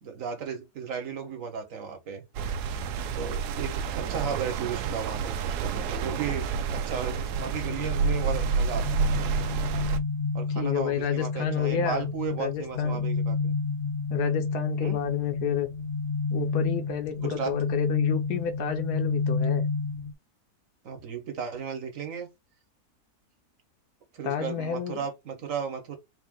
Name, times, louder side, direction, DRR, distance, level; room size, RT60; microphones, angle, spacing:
voice 1, 0.0-2.3 3.1-9.0 10.3-13.6 14.8-15.0 17.2-17.6 20.8-22.3 24.1-26.0, right 7 dB, 60° right, 1.6 m, -35 dB
sound 1, 2.3-10.0, right 5 dB, 85° right, 1.2 m, -29 dB
sound 2, 7.3-20.1, left 4 dB, 55° left, 0.8 m, -30 dB
voice 2, 10.5-12.1 12.4-13.1 14.1-15.7 16.3-19.7 24.2-25.0, left 8 dB, 80° left, 1.4 m, -30 dB
4.4 x 2.6 x 3.6 m
omnidirectional pair, 1.7 m